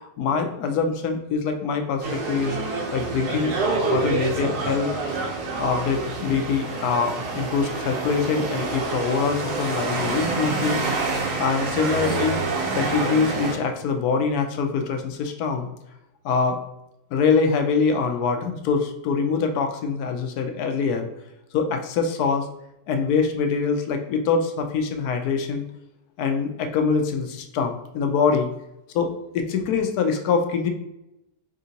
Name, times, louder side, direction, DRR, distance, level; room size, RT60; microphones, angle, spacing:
voice 1, 0.0-2.6 2.9-3.6 3.9-5.0 5.6-10.8 11.4-12.4 12.7-15.7 16.2-16.6 17.1-21.1 21.5-22.5 22.9-25.6 26.2-28.5 28.9-30.7, left 5 dB, 80° left, 5 dB, 1.1 m, -24 dB
sound 1, 2.0-13.5, right 3 dB, 80° right, 1.5 m, -27 dB
3.8 x 3.6 x 2.8 m, 0.87 s
omnidirectional pair, 1.6 m